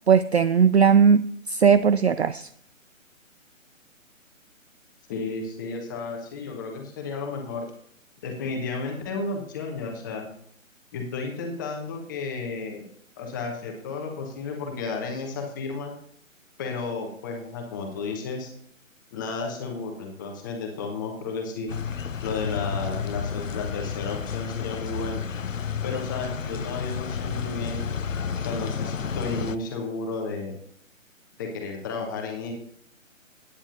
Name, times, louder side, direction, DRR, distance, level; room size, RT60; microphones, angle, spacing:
voice 1, 0.1-1.2 1.5-2.5, right 6 dB, 55° right, 14 dB, 0.5 m, -18 dB
voice 2, 5.1-7.7 8.2-10.3 10.9-12.9 13.2-15.9 16.6-18.5 19.1-21.7 22.2-25.2 25.8-27.8 28.4-30.5 31.4-32.5, left 4 dB, 15° left, 2 dB, 1.0 m, -32 dB
sound 1, 21.7-29.6, left 6 dB, 70° left, 0.7 m, -31 dB
17.0 x 9.9 x 2.6 m, 0.64 s
figure-of-eight pair, 140°, 40 cm